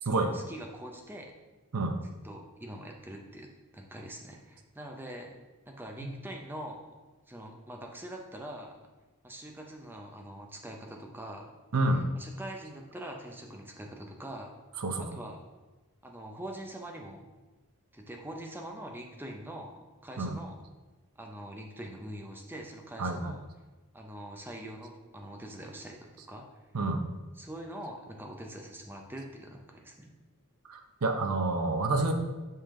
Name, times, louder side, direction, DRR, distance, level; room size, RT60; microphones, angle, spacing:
voice 1, 0.0-1.3 2.2-5.4 5.7-6.9 7.3-8.8 9.2-11.6 11.9-14.5 15.0-15.4 16.0-17.3 17.9-20.5 21.2-23.4 23.9-26.5 27.4-30.1, right 1 dB, 10° right, 1 dB, 0.6 m, -43 dB
voice 2, 11.7-12.0 14.8-15.2 20.2-20.4 23.0-23.4 26.7-27.1 30.7-32.1, right 2 dB, 85° right, 6 dB, 0.7 m, -29 dB
5.6 x 5.0 x 3.7 m, 1.2 s
head